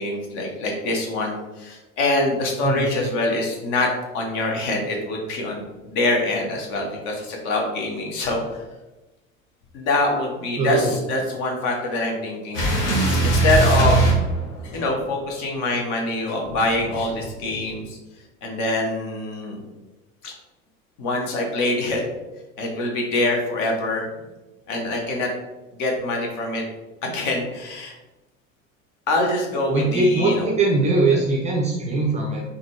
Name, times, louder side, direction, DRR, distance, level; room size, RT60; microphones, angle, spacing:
voice 1, 0.0-8.6 9.7-14.0 14.7-18.0 18.4-19.6 20.2-20.3 21.0-22.0 22.6-24.1 24.7-25.3 25.8-26.6 27.0-27.9 29.1-30.5, left 2 dB, 45° left, 1 dB, 0.9 m, -24 dB
voice 2, 10.6-11.0 29.7-32.4, right 3 dB, 20° right, -2 dB, 0.4 m, -21 dB
sound 1, 12.5-15.0 16.4-17.7, right 2 dB, 65° left, 1.2 m, -21 dB
3.7 x 2.2 x 2.9 m, 1.1 s
figure-of-eight pair, 70°, 40 cm